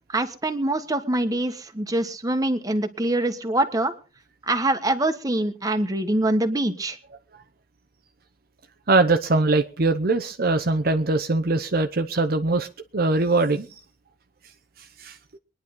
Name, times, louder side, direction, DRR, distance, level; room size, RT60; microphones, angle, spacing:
voice 1, 0.1-3.9 4.5-7.0, right 1 dB, 20° right, 7 dB, 1.4 m, -24 dB
voice 2, 8.9-12.7 12.9-13.7 15.0-15.1, right 3 dB, 55° right, 5 dB, 0.8 m, -21 dB
23.0 x 10.5 x 3.9 m, 0.34 s
head